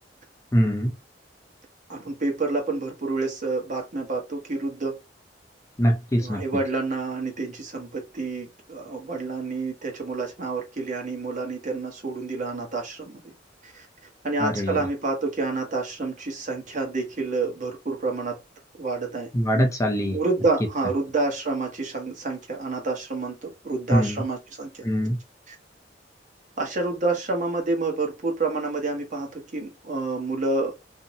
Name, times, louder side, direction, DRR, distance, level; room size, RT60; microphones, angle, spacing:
voice 1, 0.5-0.9 5.8-6.4 14.4-14.8 19.3-20.2 23.9-24.2 24.8-25.2, equal, 15° left, 0.4 m, -22 dB
voice 2, 1.9-5.0 6.2-13.3 13.6-13.9 14.2-18.4 18.8-19.3 19.6-19.7 20.1-24.8 25.5-25.6 26.6-30.7, right 3 dB, 45° right, 0.9 m, -28 dB
2.6 x 2.0 x 2.7 m
head